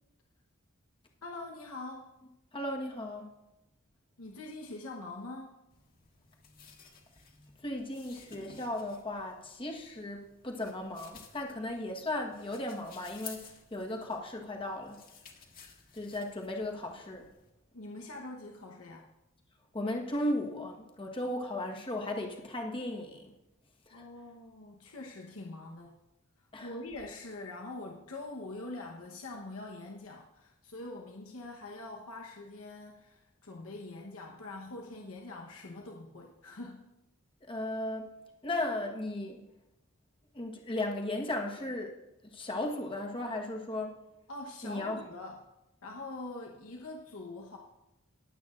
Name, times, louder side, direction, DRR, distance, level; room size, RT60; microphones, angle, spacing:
voice 1, 1.2-2.1 4.2-5.5 17.7-19.1 23.9-26.0 26.6-36.9 44.3-45.5 45.8-47.6, left 2 dB, 85° left, 0 dB, 1.1 m, -44 dB
voice 2, 2.5-3.3 7.6-15.0 15.9-17.3 19.7-23.3 23.9-24.0 26.5-26.7 37.5-38.1 38.4-39.4 40.3-41.9 42.3-44.0 44.6-45.0, left 1 dB, 25° left, 1 dB, 1.3 m, -36 dB
sound 1, 5.7-17.5, left 6 dB, 45° left, 1.6 m, -54 dB
20.5 x 8.3 x 2.5 m, 0.90 s
head